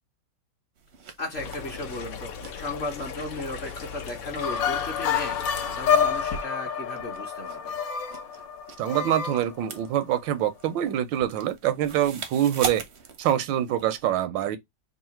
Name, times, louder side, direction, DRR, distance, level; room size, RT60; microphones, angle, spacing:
sound 1, 0.8-14.0, right 7 dB, 60° right, 0.7 m, -42 dB
voice 1, 1.2-7.7, left 2 dB, 45° left, 1.0 m, -36 dB
sound 2, 1.3-6.4, left 6 dB, 60° left, 1.1 m, -38 dB
sound 3, 4.4-10.0, left 7 dB, 85° left, 1.4 m, -28 dB
voice 2, 8.8-12.8 13.2-14.6, right 11 dB, 85° right, 1.3 m, -25 dB
3.7 x 2.4 x 4.3 m
omnidirectional pair, 2.0 m